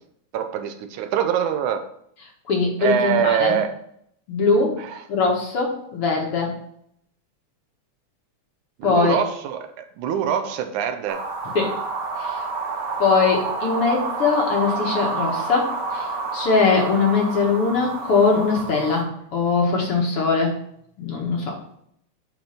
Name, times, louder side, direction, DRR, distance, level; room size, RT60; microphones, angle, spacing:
voice 1, 0.3-1.9 2.8-3.8 4.8-5.0 8.8-11.3, right 8 dB, 85° right, 8 dB, 2.3 m, -24 dB
voice 2, 2.5-3.6 4.3-4.8 5.1-6.5 8.8-9.2 11.6-11.7 12.2-12.4 13.0-15.7 15.9-16.1 16.3-19.1 19.3-20.5 21.0-21.5, left 4 dB, 55° left, 0 dB, 2.3 m, -21 dB
sound 1, 11.1-19.0, right 4 dB, 45° right, 1.5 m, -29 dB
10.0 x 4.5 x 5.1 m, 0.69 s
omnidirectional pair, 3.4 m